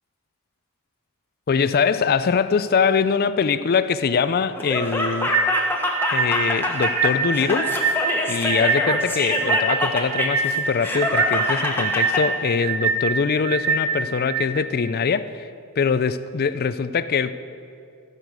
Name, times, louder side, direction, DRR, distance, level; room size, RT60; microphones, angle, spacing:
voice 1, 1.5-5.3 6.1-8.0 8.3-15.5 15.8-17.3, left 6 dB, 45° left, 14 dB, 0.4 m, -23 dB
Laughter, 4.5-12.2, left 1 dB, 10° left, 1.2 m, -25 dB
sound 1, 5.3-14.5, right 4 dB, 70° right, 1.1 m, -24 dB
14.5 x 6.6 x 7.9 m, 2.4 s
head